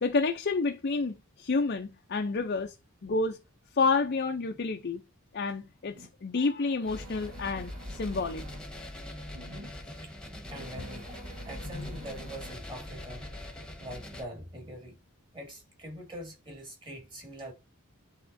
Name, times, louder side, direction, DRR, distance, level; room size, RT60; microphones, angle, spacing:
voice 1, 0.0-2.8 3.0-3.4 3.7-5.0 5.3-8.4 11.7-11.9, left 4 dB, 45° left, 0.5 m, -29 dB
sound 1, 5.9-6.1 6.8-8.6 9.3-9.7 10.4-12.5, right 1 dB, 75° right, 1.3 m, -50 dB
sound 2, 6.8-14.2, left 1 dB, 5° left, 1.2 m, -42 dB
voice 2, 10.5-13.3 13.8-15.0 15.3-17.5, equal, 20° right, 2.2 m, -43 dB
10.0 x 3.6 x 2.6 m
head